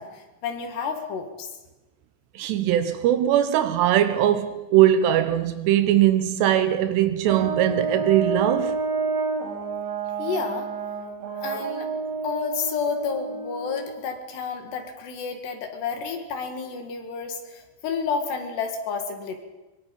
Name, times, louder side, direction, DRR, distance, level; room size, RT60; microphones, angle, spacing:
voice 1, 0.0-1.5 10.2-10.7 11.4-11.9 12.2-19.4, left 5 dB, 70° left, 4.0 m, -30 dB
voice 2, 2.4-8.8, right 11 dB, 75° right, 2.8 m, -21 dB
Brass instrument, 7.2-14.0, right 4 dB, 45° right, 2.6 m, -29 dB
24.0 x 22.5 x 5.4 m
omnidirectional pair, 5.3 m